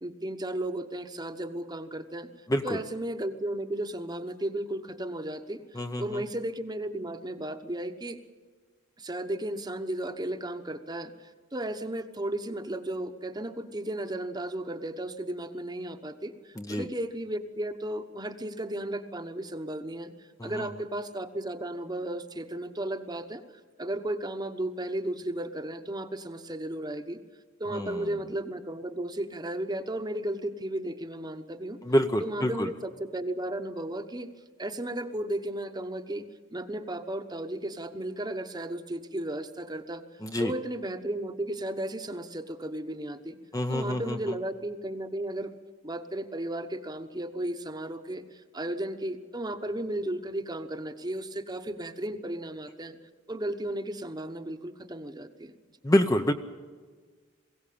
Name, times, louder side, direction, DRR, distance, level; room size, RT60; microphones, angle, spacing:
voice 1, 0.0-2.3 2.6-8.2 9.0-23.4 23.8-27.2 27.6-31.8 32.2-34.3 34.6-36.3 36.5-40.0 40.4-43.4 43.7-45.5 45.8-53.0 53.3-55.5, right 1 dB, 20° right, 8 dB, 1.1 m, -34 dB
voice 2, 2.5-2.8 5.7-6.2 16.6-16.9 20.4-20.7 27.7-28.1 31.8-32.7 40.2-40.5 43.5-44.4 55.8-56.3, equal, 15° left, 6 dB, 0.7 m, -27 dB
22.0 x 17.0 x 8.6 m, 1.5 s
head